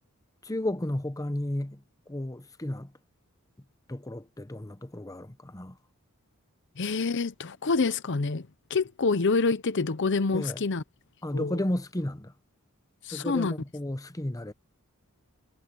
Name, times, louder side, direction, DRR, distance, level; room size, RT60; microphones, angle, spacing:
voice 1, 0.4-1.8 2.1-2.9 3.9-5.8 10.3-10.6 11.2-12.3 13.1-14.5, left 1 dB, 15° left, 0.8 m, -33 dB
voice 2, 6.8-10.8 11.3-11.6 13.0-13.5, left 4 dB, 55° left, 0.7 m, -27 dB
head